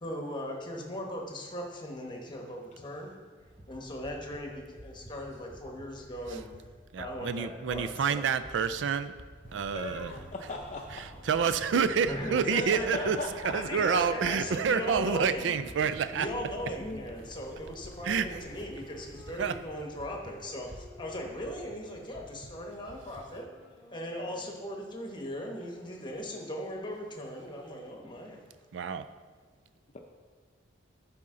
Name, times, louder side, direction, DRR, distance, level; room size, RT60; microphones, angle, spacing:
voice 1, 0.0-3.1 3.7-6.5 7.0-8.2 12.1-15.5 16.1-23.5 23.9-28.4, equal, 25° left, 1 dB, 1.1 m, -38 dB
sound 1, 3.4-23.3, equal, 10° right, 0.6 m, -52 dB
voice 2, 6.9-9.1 9.5-10.2 10.9-13.2 13.4-16.3 18.0-18.4 19.4-19.6 28.7-29.1, right 6 dB, 80° right, 12 dB, 0.4 m, -28 dB
sound 2, 9.4-19.8, equal, 50° right, 1.6 m, -51 dB
voice 3, 9.7-10.8 12.4-13.6 16.8-17.1, left 2 dB, 40° left, 0 dB, 0.6 m, -38 dB
sound 3, 16.8-19.4 20.0-25.6, right 1 dB, 5° left, 1.9 m, -56 dB
11.5 x 4.3 x 3.8 m, 1.5 s
head